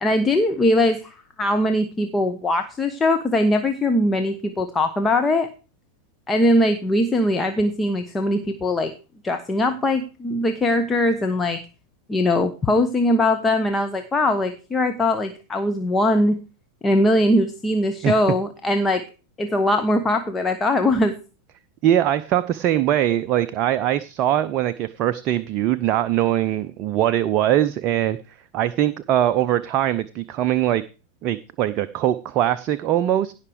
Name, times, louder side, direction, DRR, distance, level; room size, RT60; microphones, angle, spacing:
voice 1, 0.0-5.5 6.3-8.9 9.2-11.6 12.1-16.4 16.8-19.0 19.4-21.2, left 1 dB, 15° left, 6 dB, 1.1 m, -21 dB
voice 2, 21.8-28.2 28.5-30.8 31.2-33.3, right 12 dB, 35° right, 12 dB, 0.6 m, -21 dB
16.5 x 5.9 x 4.9 m, 0.33 s
figure-of-eight pair, 90°, 0 cm